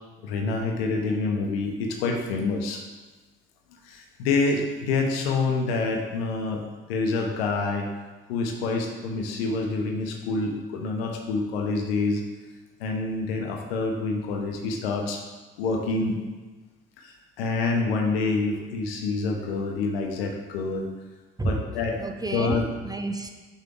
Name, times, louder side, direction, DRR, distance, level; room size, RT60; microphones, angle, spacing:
voice 1, 0.2-2.8 4.2-6.6 6.9-7.9 8.3-12.2 12.8-15.2 15.6-16.2 17.4-20.9 21.4-22.0 22.3-22.6, left 3 dB, 80° left, 2 dB, 1.0 m, -27 dB
voice 2, 21.4-23.3, right 2 dB, 15° right, 4 dB, 0.9 m, -30 dB
6.3 x 6.3 x 3.7 m, 1.3 s
hypercardioid pair, 55°, 30 cm